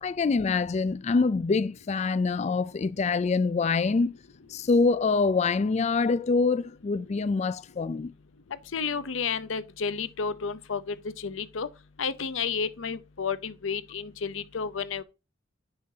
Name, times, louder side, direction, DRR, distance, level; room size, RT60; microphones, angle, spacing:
voice 1, 0.0-4.2 4.5-8.1, left 4 dB, 35° left, 0.3 m, -25 dB
voice 2, 8.7-11.7 12.0-15.0, left 5 dB, 80° left, 0.7 m, -31 dB
9.7 x 5.7 x 2.7 m
head